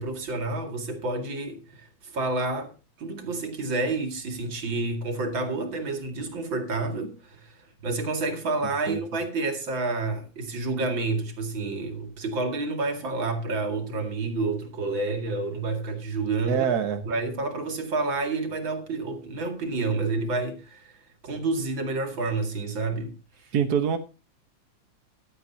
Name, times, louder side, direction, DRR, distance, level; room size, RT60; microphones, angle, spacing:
voice 1, 0.0-2.7 3.0-16.7 17.0-23.1 23.4-23.5, right 3 dB, 85° right, 3.0 m, -29 dB
voice 2, 16.5-17.0 23.5-24.0, right 8 dB, 60° right, 1.6 m, -24 dB
15.5 x 11.5 x 2.8 m
omnidirectional pair, 2.0 m